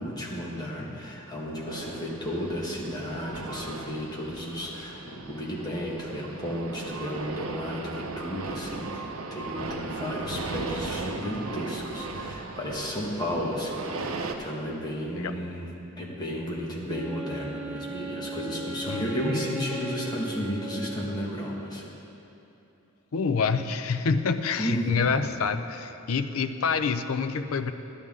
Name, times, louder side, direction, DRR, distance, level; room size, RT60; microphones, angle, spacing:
voice 1, 0.0-15.7 16.0-21.9 24.6-25.2, equal, 20° left, -4 dB, 1.6 m, -33 dB
sound 1, 1.7-14.4, right 3 dB, 80° right, 0.7 m, -37 dB
Wind instrument woodwind instrument, 16.9-21.7, right 2 dB, 15° right, 2.6 m, -37 dB
voice 2, 23.1-27.7, left 5 dB, 75° left, 9 dB, 0.5 m, -27 dB
12.5 x 11.5 x 3.7 m, 2.8 s
head